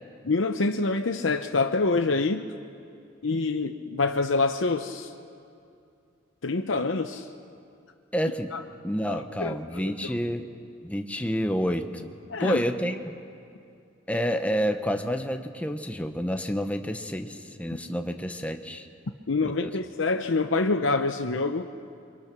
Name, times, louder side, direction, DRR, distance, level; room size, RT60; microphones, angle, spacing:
voice 1, 0.2-2.4 3.2-5.1 6.4-7.3 8.5-8.6 9.1-10.1 12.3-12.6 19.3-21.7, left 3 dB, 90° left, 6 dB, 0.8 m, -26 dB
voice 2, 8.1-8.5 8.8-10.4 10.8-12.1 12.4-13.0 14.1-18.9 19.4-19.7, equal, 5° left, 6 dB, 1.1 m, -29 dB
29.0 x 24.0 x 6.1 m, 2.5 s
head